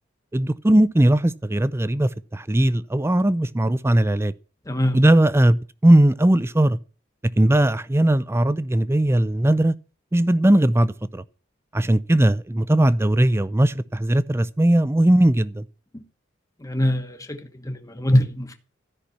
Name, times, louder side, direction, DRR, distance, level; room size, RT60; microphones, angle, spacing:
voice 1, 0.3-4.3 4.9-6.8 7.4-9.7 10.1-11.2 11.7-15.6, right 1 dB, 15° right, 0.5 m, -19 dB
voice 2, 4.7-5.0 15.9-16.0 16.6-17.4 17.6-18.6, equal, 15° left, 1.1 m, -22 dB
13.0 x 5.8 x 8.3 m
head